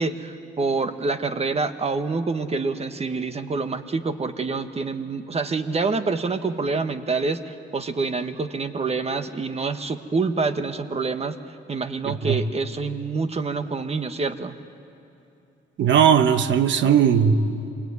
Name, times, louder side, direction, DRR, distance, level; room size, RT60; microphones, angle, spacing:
voice 1, 0.0-11.4 11.7-14.6, right 4 dB, 30° right, 9 dB, 1.5 m, -26 dB
voice 2, 12.0-12.4 15.8-17.7, right 7 dB, 70° right, 10 dB, 1.3 m, -19 dB
26.0 x 21.0 x 9.6 m, 2.7 s
cardioid pair, 90°, 20 cm